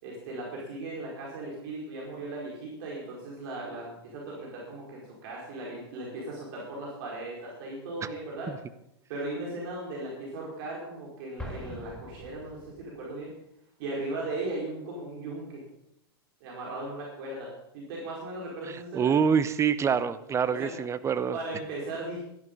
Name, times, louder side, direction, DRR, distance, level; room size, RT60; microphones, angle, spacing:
voice 1, 0.0-8.5 9.1-13.3 13.8-15.6 16.4-19.1 20.5-20.7 21.3-22.2, right 2 dB, 60° right, -3 dB, 4.8 m, -37 dB
Explosion, 11.4-13.1, left 1 dB, 5° left, 2.1 m, -43 dB
voice 2, 18.7-21.4, right 7 dB, 20° right, 14 dB, 0.9 m, -26 dB
14.0 x 11.5 x 5.4 m, 0.79 s
hypercardioid pair, 115°, 13 cm